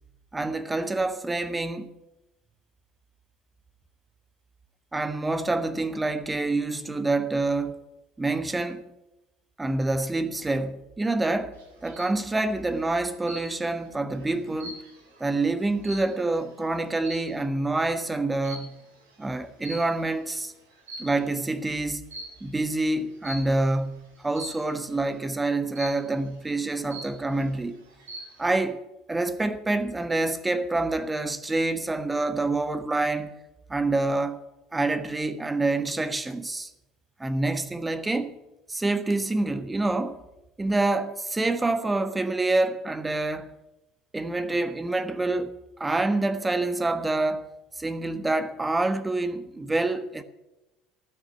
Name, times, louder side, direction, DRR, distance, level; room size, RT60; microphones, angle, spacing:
voice 1, 0.3-1.9 4.9-7.8 8.2-8.9 9.6-11.6 11.8-14.8 15.2-18.8 19.2-20.5 21.0-27.8 28.4-28.8 29.1-33.4 33.7-34.4 34.7-36.7 37.2-38.3 38.7-40.2 40.6-43.5 44.1-47.5 47.8-50.2, right 2 dB, 15° right, 1.3 m, -27 dB
sound 1, 11.6-12.2 13.3-13.8 14.2-16.4 17.0-17.4 18.4-18.8 19.6-20.2 20.7-21.4 22.1-22.5 23.2-23.6 24.4-24.8 25.8-26.2 26.6-26.7 26.9-27.5 27.9-28.4, right 1 dB, 85° right, 3.2 m, -41 dB
14.0 x 6.5 x 9.9 m
hypercardioid pair, 70°, 0 cm